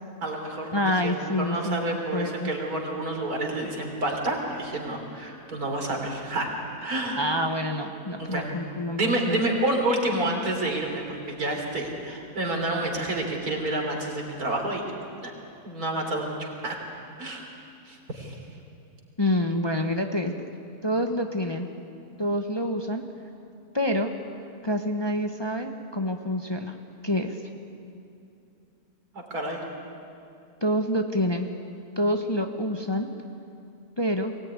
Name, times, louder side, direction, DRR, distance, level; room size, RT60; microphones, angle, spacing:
voice 1, 0.2-0.8 1.0-7.2 8.2-8.5 9.0-14.9 15.2-15.3 15.6-16.8 17.2-17.5 17.9-18.4 29.1-29.6, right 1 dB, 85° right, 1 dB, 3.8 m, -29 dB
voice 2, 0.7-2.5 7.2-9.4 19.2-20.3 20.8-21.7 22.2-23.0 23.7-24.1 24.6-26.7 27.0-27.4 30.6-31.5 32.0-33.1 34.0-34.3, left 1 dB, 20° left, 4 dB, 0.9 m, -27 dB
23.0 x 17.5 x 9.6 m, 2.6 s
omnidirectional pair, 1.6 m